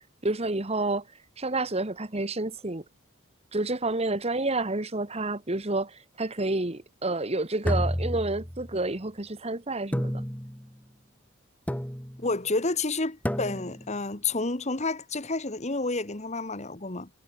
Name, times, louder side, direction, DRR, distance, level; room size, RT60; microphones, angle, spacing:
voice 1, 0.2-1.0 1.4-2.8 3.5-10.2, right 2 dB, 30° right, 1.5 m, -29 dB
sound 1, 7.6-8.8 9.9-10.7 11.7-12.3 13.2-13.9, equal, 5° left, 3.0 m, -30 dB
voice 2, 12.2-17.1, left 3 dB, 30° left, 1.6 m, -30 dB
head